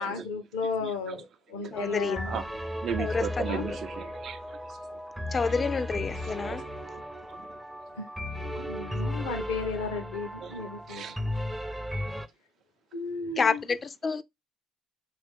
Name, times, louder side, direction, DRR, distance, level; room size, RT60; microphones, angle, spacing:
voice 1, 0.0-2.4 3.5-3.7 8.0-8.1 8.6-11.1 12.9-13.6, left 4 dB, 85° left, 0.7 m, -34 dB
voice 2, 0.8-1.2 1.5-1.8 2.2-2.5 2.8-5.2 6.2-7.6 8.4-8.6 10.4-11.2, right 8 dB, 60° right, 0.5 m, -39 dB
voice 3, 1.7-2.3 3.0-3.2 5.3-6.6 13.4-14.2, left 5 dB, 40° left, 0.4 m, -28 dB
sound 1, 1.8-12.3, left 1 dB, 10° right, 0.5 m, -35 dB
3.0 x 2.4 x 3.4 m
hypercardioid pair, 55°, 0 cm